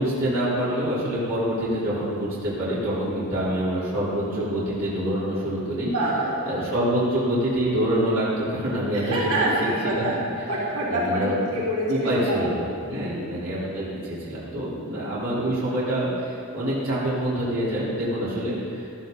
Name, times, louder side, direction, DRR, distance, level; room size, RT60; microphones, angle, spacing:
voice 1, 0.0-5.9 6.4-10.0 10.9-11.6 11.9-19.0, right 1 dB, 65° right, -9 dB, 3.8 m, -26 dB
voice 2, 5.8-6.5 9.0-9.6 9.8-10.2 10.5-12.4 12.9-13.3 14.8-15.0, right 1 dB, 85° right, -8 dB, 3.8 m, -26 dB
15.0 x 14.0 x 4.0 m, 2.4 s
head